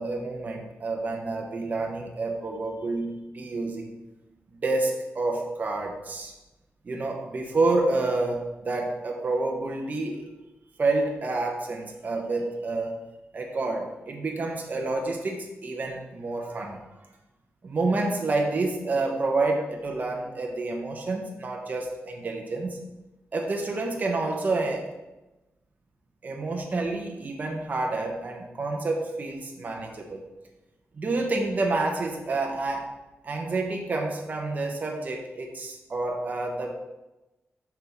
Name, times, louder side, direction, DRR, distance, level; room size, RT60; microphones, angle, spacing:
voice 1, 0.0-3.9 4.6-6.3 6.8-10.3 10.8-13.0 13.3-16.8 17.6-22.8 23.3-24.9 26.2-30.2 30.9-32.9 33.2-36.7, right 2 dB, 35° right, 0 dB, 0.9 m, -28 dB
6.0 x 5.7 x 4.5 m, 1.0 s
wide cardioid pair, 175°, 5 cm